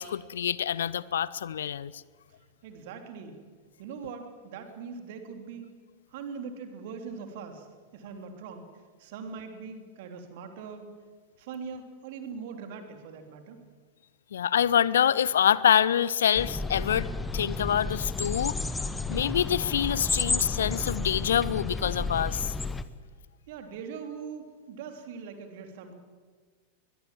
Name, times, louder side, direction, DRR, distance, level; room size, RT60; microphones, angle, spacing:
voice 1, 0.0-1.9 14.3-17.1 17.3-18.6 19.1-22.5, left 9 dB, 65° left, 20 dB, 0.7 m, -26 dB
voice 2, 2.6-3.4 3.8-5.7 6.1-7.7 7.9-8.6 9.0-10.9 11.4-13.6 23.5-25.9, right 5 dB, 50° right, 6 dB, 3.3 m, -41 dB
sound 1, 16.4-22.8, left 3 dB, 10° left, 1.1 m, -32 dB
22.5 x 21.5 x 7.7 m, 1.5 s
figure-of-eight pair, 90°, 0 cm